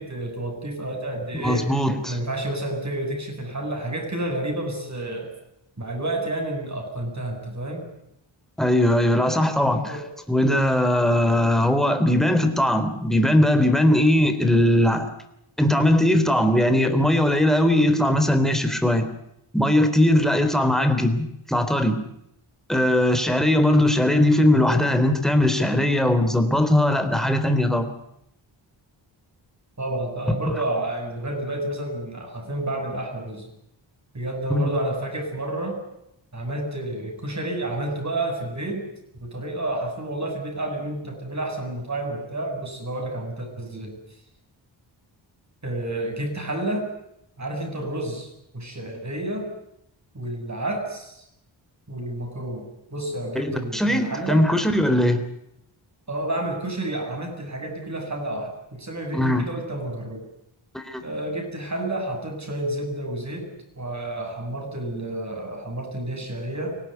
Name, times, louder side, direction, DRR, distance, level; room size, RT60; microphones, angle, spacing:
voice 1, 0.0-1.7 2.0-5.3 5.8-7.8 9.9-10.1 29.8-33.5 34.1-35.8 36.3-38.9 39.2-44.0 45.6-46.9 47.4-49.5 50.1-51.2 51.9-54.5 56.1-60.3 61.0-63.5 63.8-66.8, right 1 dB, 35° right, 3 dB, 7.9 m, -30 dB
voice 2, 1.3-2.2 8.6-10.0 10.3-15.1 15.6-19.1 19.5-22.0 22.7-27.9 34.5-34.7 53.4-55.2 59.1-59.4 60.7-61.0, left 1 dB, ahead, 7 dB, 3.6 m, -20 dB
24.5 x 18.0 x 9.4 m, 0.79 s
wide cardioid pair, 70°, 46 cm